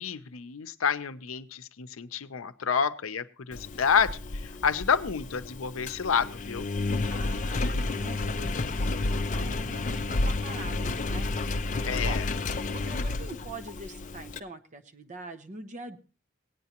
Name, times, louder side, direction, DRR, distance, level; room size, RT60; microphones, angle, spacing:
voice 1, 0.0-6.7 9.4-10.0 11.9-12.2, left 6 dB, 80° left, 12 dB, 0.6 m, -29 dB
Engine, 3.5-14.4, left 2 dB, 40° left, 0.5 m, -31 dB
voice 2, 7.1-11.3 12.0-12.2 12.7-16.0, right 2 dB, 35° right, 7 dB, 0.9 m, -43 dB
18.0 x 9.4 x 2.9 m, 0.35 s
head